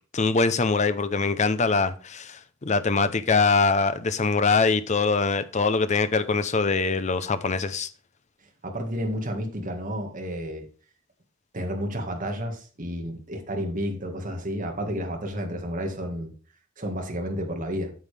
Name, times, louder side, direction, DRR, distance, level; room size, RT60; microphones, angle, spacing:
voice 1, 0.1-7.9, left 4 dB, 35° left, 0.6 m, -23 dB
voice 2, 8.6-10.6 11.5-16.3 16.8-17.9, equal, 40° right, 1.8 m, -31 dB
9.1 x 7.1 x 3.4 m
head